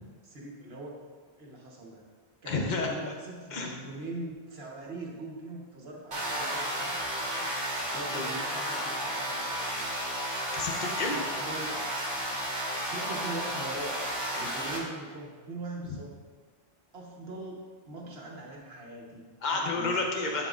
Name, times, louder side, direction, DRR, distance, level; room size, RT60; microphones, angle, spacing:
voice 1, 0.2-1.0 1.4-2.0 2.4-7.0 7.9-9.8 11.1-11.8 12.8-13.9 14.3-16.1 16.9-20.0, right 2 dB, 75° right, -2 dB, 1.4 m, -41 dB
voice 2, 2.5-3.0 3.5-3.7 7.4-7.6 8.1-8.3 10.5-11.1 19.4-20.5, left 3 dB, 50° left, 1 dB, 1.0 m, -31 dB
sound 1, 6.1-14.8, equal, 55° right, 1.8 m, -33 dB
10.5 x 4.7 x 2.4 m, 1.5 s
omnidirectional pair, 1.0 m